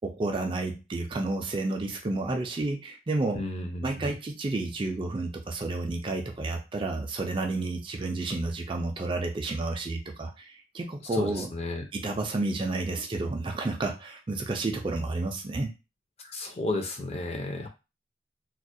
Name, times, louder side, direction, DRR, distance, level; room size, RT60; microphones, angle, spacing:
voice 1, 0.0-3.4 3.8-11.5 11.9-15.7, right 2 dB, 30° right, 3 dB, 0.3 m, -31 dB
voice 2, 3.3-4.1 11.2-11.9 16.3-17.7, left 2 dB, 35° left, 3 dB, 0.5 m, -33 dB
2.3 x 2.1 x 2.6 m, 0.27 s
head